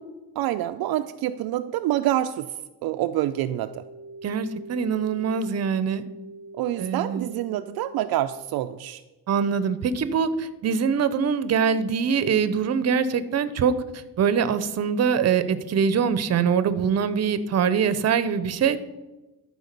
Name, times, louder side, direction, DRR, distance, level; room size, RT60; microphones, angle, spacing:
voice 1, 0.4-2.5 2.8-3.8 6.6-9.0, right 13 dB, 70° right, 8 dB, 0.5 m, -27 dB
sound 1, 3.5-8.4, right 2 dB, 15° right, 0.9 m, -43 dB
voice 2, 4.2-6.0 6.8-7.3 9.3-13.7 14.2-18.8, right 6 dB, 40° right, 13 dB, 0.8 m, -23 dB
13.0 x 4.8 x 6.7 m, 1.1 s
cardioid pair, 130°, 39 cm